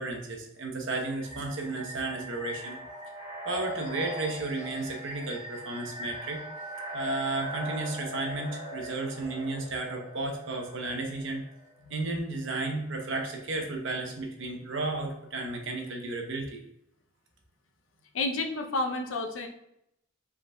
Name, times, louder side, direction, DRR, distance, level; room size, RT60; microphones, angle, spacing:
voice 1, 0.0-2.8 3.4-6.4 6.9-11.4 11.9-16.6, right 2 dB, 70° right, 2 dB, 0.9 m, -33 dB
sound 1, 0.9-11.7, equal, 35° left, 1.5 m, -40 dB
voice 2, 18.1-19.5, left 2 dB, 85° left, 4 dB, 0.6 m, -31 dB
5.2 x 3.8 x 2.3 m, 0.80 s
head